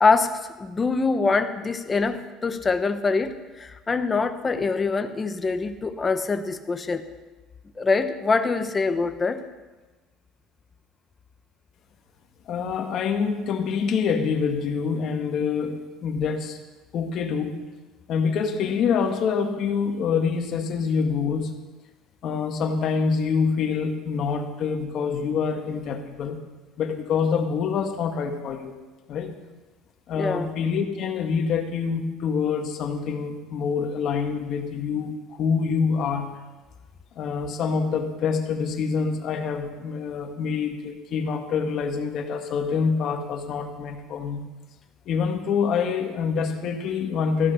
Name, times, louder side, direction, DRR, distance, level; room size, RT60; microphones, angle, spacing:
voice 1, 0.0-7.0 7.8-9.5 30.2-30.5, left 4 dB, 15° left, 8 dB, 0.9 m, -24 dB
voice 2, 12.5-16.6 16.9-17.5 18.1-21.5 22.2-26.4 26.8-28.7 29.1-29.3 30.1-36.3 37.2-44.4 45.1-47.5, left 6 dB, 45° left, 4 dB, 1.7 m, -26 dB
15.0 x 11.0 x 6.8 m, 1.2 s
cardioid pair, 155°, 0 cm